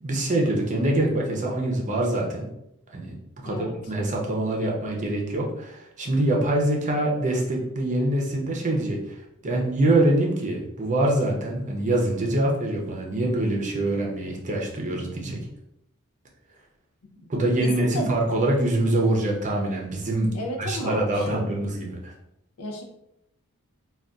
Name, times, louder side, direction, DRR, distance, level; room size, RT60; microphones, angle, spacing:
voice 1, 0.0-2.5 2.9-3.1 3.4-3.6 3.9-9.2 9.4-15.4 17.3-20.3 20.6-22.1, right 1 dB, 35° right, -1 dB, 0.6 m, -24 dB
voice 2, 17.0-17.3 17.6-18.1 20.3-21.5 22.6-22.8, left 1 dB, 75° left, 2 dB, 0.6 m, -33 dB
2.5 x 2.3 x 3.4 m, 0.81 s
head